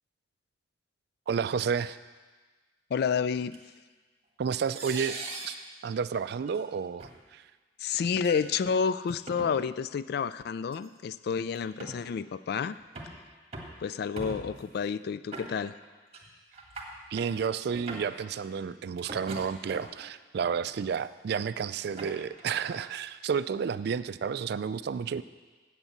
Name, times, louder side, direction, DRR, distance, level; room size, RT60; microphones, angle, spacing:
voice 1, 1.3-2.0 4.4-5.2 5.4-5.5 5.8-7.4 17.1-25.2, right 6 dB, 60° right, 15 dB, 0.3 m, -31 dB
voice 2, 2.9-3.6 7.8-12.8 13.8-15.7, left 6 dB, 60° left, 16 dB, 0.3 m, -30 dB
sound 1, 3.5-3.6 4.7-5.6 6.5-6.6 7.0-7.1 8.1-8.4 9.1-9.5 10.7-10.8 11.5-12.0 12.6-13.2 13.5-13.8 14.2-14.7 15.3-15.9 16.1-16.2 16.5-17.3 17.7-18.2 19.0-20.0 20.6-21.0 21.6-22.9, right 2 dB, 35° right, 1.6 m, -41 dB
8.2 x 8.1 x 7.2 m, 1.4 s
head